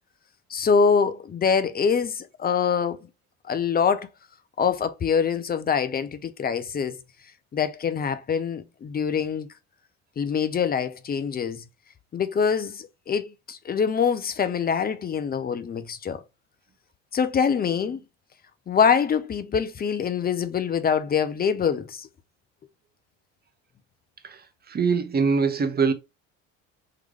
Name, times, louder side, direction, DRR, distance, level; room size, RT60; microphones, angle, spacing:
voice 1, 0.5-3.0 3.4-4.1 4.6-7.0 7.5-9.5 10.2-11.6 12.1-16.2 17.1-18.0 18.7-22.1, left 6 dB, 25° left, 0.5 m, -24 dB
voice 2, 24.2-25.9, right 5 dB, 25° right, 0.8 m, -23 dB
3.8 x 3.1 x 3.3 m
hypercardioid pair, 70°, 39 cm